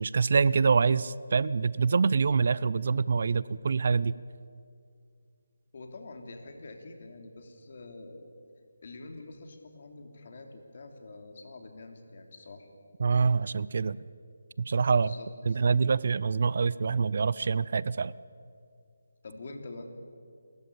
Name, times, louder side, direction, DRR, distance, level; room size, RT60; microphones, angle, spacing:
voice 1, 0.0-4.1 13.0-14.0 14.7-15.1 15.5-18.1, right 5 dB, 55° right, 19 dB, 0.5 m, -25 dB
voice 2, 5.7-8.3 8.8-12.7 14.9-15.6 19.2-19.9, left 2 dB, 50° left, 5 dB, 3.0 m, -46 dB
28.5 x 14.0 x 8.7 m, 2.3 s
figure-of-eight pair, 160°, 0 cm